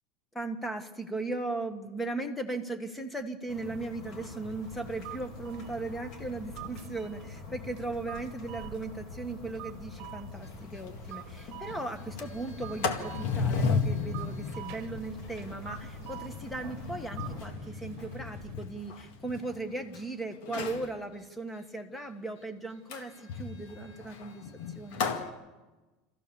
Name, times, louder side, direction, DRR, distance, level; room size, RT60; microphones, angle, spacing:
voice 1, 0.3-25.0, right 2 dB, 5° left, 8 dB, 1.6 m, -37 dB
sound 1, 3.5-17.5, left 3 dB, 45° left, 2.9 m, -45 dB
sound 2, 4.6-18.5, right 15 dB, 55° right, 1.1 m, -48 dB
Sliding door, 10.4-10.5 10.9-11.0 11.3-11.6 12.0-20.0 20.4-20.9 22.9-25.3, left 5 dB, 70° left, 2.1 m, -35 dB
26.0 x 15.0 x 7.2 m, 1.2 s
supercardioid pair, 145°, 0 cm